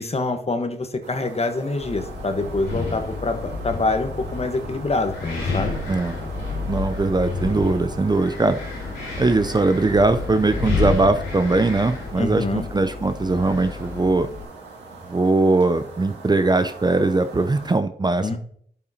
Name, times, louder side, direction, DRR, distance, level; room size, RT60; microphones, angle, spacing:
voice 1, 0.0-5.7 12.2-12.7 18.2-18.4, left 3 dB, 35° left, 7 dB, 1.2 m, -25 dB
sound 1, 1.0-17.8, right 4 dB, 75° right, 2.1 m, -41 dB
Wind, 1.8-14.4, left 4 dB, 90° left, 2.7 m, -30 dB
voice 2, 6.7-8.6 9.2-14.3 15.1-18.4, right 3 dB, 25° right, 10 dB, 0.5 m, -20 dB
11.5 x 5.7 x 2.8 m, 0.63 s
supercardioid pair, 45°, 18 cm